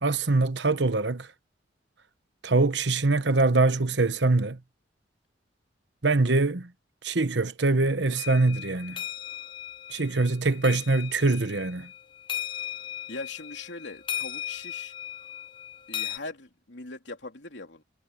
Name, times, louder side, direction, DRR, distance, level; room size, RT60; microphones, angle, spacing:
voice 1, 0.0-1.3 2.4-4.6 6.0-6.7 7.0-9.0 9.9-11.9, right 3 dB, 70° right, 1.2 m, -23 dB
sound 1, 8.2-16.2, left 10 dB, 25° left, 0.9 m, -37 dB
voice 2, 13.1-14.9 15.9-17.8, left 3 dB, 75° left, 3.2 m, -41 dB
head